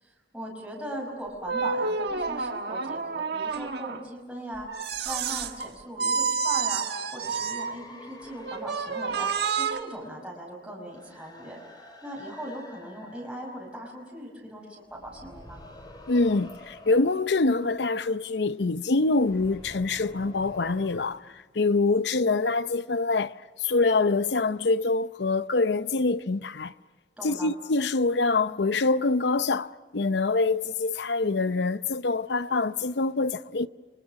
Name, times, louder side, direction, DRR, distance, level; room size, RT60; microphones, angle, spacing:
voice 1, 0.0-6.8 7.1-11.6 12.0-15.6 27.2-27.5, right 1 dB, 5° right, 5.4 m, -39 dB
sound 1, 1.4-4.0 4.7-5.7 6.0-7.7 8.4-9.8, right 5 dB, 65° right, 1.5 m, -29 dB
sound 2, 7.2-14.5 14.9-21.2, left 1 dB, 25° left, 4.4 m, -49 dB
voice 2, 16.1-26.7 27.2-33.7, left 3 dB, 70° left, 0.7 m, -25 dB
30.0 x 25.0 x 6.0 m
head